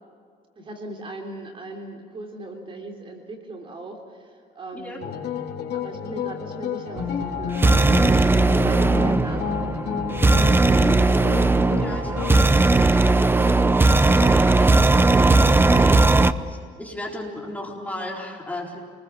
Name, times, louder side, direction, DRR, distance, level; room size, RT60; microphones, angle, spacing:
voice 1, 0.6-5.2 5.7-10.0, right 2 dB, 30° right, 2 dB, 3.5 m, -38 dB
sound 1, 5.0-12.4, left 7 dB, 60° left, 3.8 m, -30 dB
sound 2, 7.0-16.3, right 2 dB, 10° right, 0.7 m, -18 dB
voice 2, 10.7-11.0 11.8-18.8, left 1 dB, 10° left, -1 dB, 4.2 m, -36 dB
28.0 x 21.0 x 7.4 m, 2.2 s
cardioid pair, 140°, 18 cm